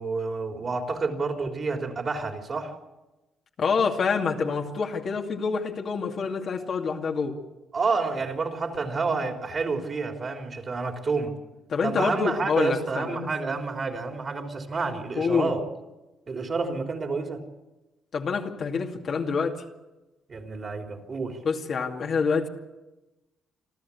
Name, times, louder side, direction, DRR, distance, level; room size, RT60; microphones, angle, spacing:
voice 1, 0.0-2.7 7.7-11.3 11.8-15.6 16.3-17.4 20.3-21.4, right 4 dB, 40° right, 4 dB, 3.6 m, -29 dB
voice 2, 3.6-7.4 11.7-13.2 15.1-15.5 18.1-19.6 21.4-22.5, left 5 dB, 55° left, 2 dB, 2.5 m, -26 dB
27.0 x 13.0 x 8.5 m, 1.1 s
cardioid pair, 90°, 0 cm